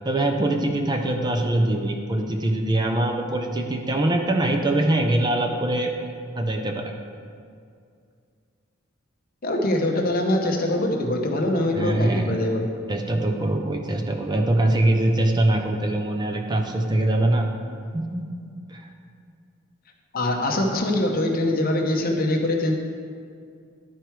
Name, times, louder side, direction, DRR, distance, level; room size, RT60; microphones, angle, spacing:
voice 1, 0.0-5.9 6.3-6.9 11.7-12.3 12.9-17.5 17.9-18.3 18.7-18.9, right 1 dB, 20° right, 3 dB, 0.5 m, -23 dB
voice 2, 9.4-12.7 20.1-22.7, left 1 dB, 45° left, 1 dB, 0.9 m, -23 dB
11.5 x 4.6 x 4.6 m, 2.3 s
head